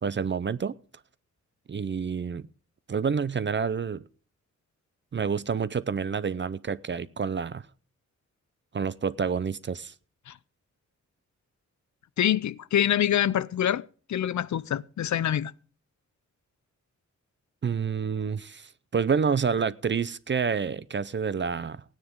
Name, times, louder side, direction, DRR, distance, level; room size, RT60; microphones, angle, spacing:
voice 1, 0.0-0.8 1.7-2.4 2.9-4.0 5.1-7.7 8.7-9.9 17.6-21.8, right 6 dB, 40° right, 0.5 m, -28 dB
voice 2, 12.2-15.5, left 10 dB, 70° left, 0.5 m, -26 dB
17.5 x 9.7 x 3.7 m
wide cardioid pair, 170°, 29 cm